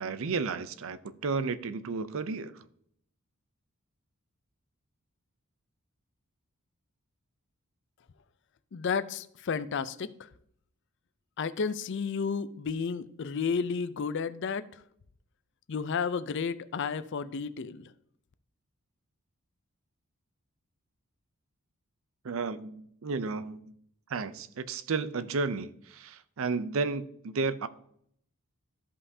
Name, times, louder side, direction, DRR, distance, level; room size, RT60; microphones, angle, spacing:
voice 1, 0.0-2.5 22.2-23.7 24.1-27.7, right 4 dB, 60° right, 0.5 m, -33 dB
voice 2, 8.7-10.1 11.4-14.8 15.7-17.9, left 5 dB, 55° left, 0.4 m, -32 dB
13.5 x 5.5 x 2.7 m
head